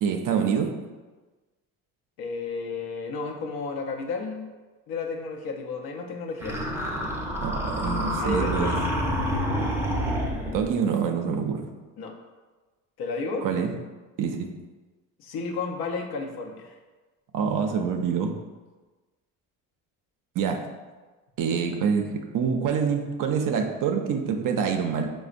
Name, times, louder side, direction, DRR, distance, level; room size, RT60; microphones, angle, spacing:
voice 1, 0.0-0.7 7.4-8.7 10.5-11.7 13.4-13.7 14.2-14.5 17.3-18.3 20.4-20.6 21.4-25.1, right 6 dB, 50° right, 4 dB, 0.5 m, -26 dB
voice 2, 2.2-4.5 4.9-6.6 7.8-8.8 12.0-12.1 13.0-13.5 15.2-16.7, left 4 dB, 65° left, 2 dB, 0.7 m, -32 dB
sound 1, 6.4-10.7, equal, 5° right, 0.7 m, -28 dB
4.8 x 2.1 x 2.4 m, 1.3 s
supercardioid pair, 70°, 41 cm